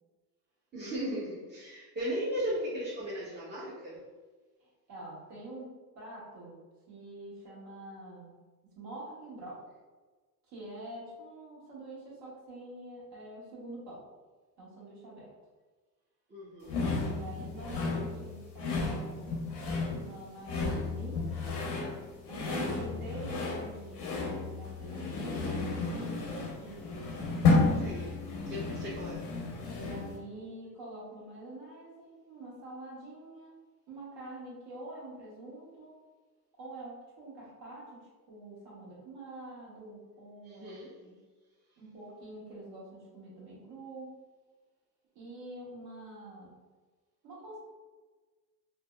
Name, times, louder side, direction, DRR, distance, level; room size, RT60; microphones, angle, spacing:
voice 1, 0.7-4.0 16.3-17.0 27.8-28.1 28.5-29.2 40.4-40.9, equal, 20° right, -8 dB, 0.7 m, -36 dB
voice 2, 4.6-6.6 6.9-8.3 8.7-9.6 10.5-14.0 14.6-15.3 17.1-19.4 20.0-21.6 22.3-27.4 29.8-33.5 33.9-35.9 36.6-41.2 41.8-44.2 45.1-46.5 47.2-47.6, right 2 dB, 60° right, -5 dB, 1.4 m, -46 dB
sound 1, 16.7-30.2, left 3 dB, 85° left, 0.8 m, -32 dB
3.3 x 2.1 x 2.2 m, 1.3 s
hypercardioid pair, 80°, 49 cm